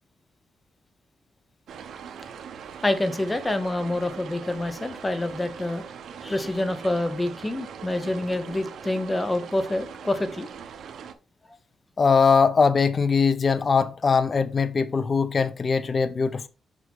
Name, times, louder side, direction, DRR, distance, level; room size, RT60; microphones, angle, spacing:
sound 1, 1.7-11.1, right 7 dB, 75° right, 0.9 m, -41 dB
voice 1, 2.8-5.8 6.2-10.5, left 1 dB, 15° left, 1.0 m, -27 dB
voice 2, 12.0-16.5, left 5 dB, 35° left, 0.7 m, -21 dB
6.3 x 5.5 x 3.6 m
cardioid pair, 130°, 0 cm